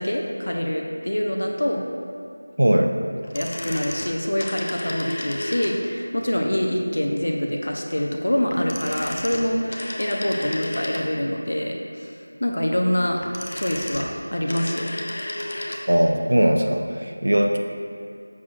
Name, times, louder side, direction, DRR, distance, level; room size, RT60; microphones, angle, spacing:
voice 1, 0.0-1.9 3.3-13.2 13.5-14.9, equal, 65° left, 1 dB, 0.8 m, -25 dB
voice 2, 2.6-2.9 15.9-17.6, right 1 dB, 65° right, 4 dB, 0.6 m, -19 dB
sound 1, 3.2-6.0 8.5-11.4 13.0-15.9 16.1-16.2, left 1 dB, 30° left, 0.4 m, -33 dB
7.0 x 6.3 x 2.5 m, 2.4 s
figure-of-eight pair, 180°, 0 cm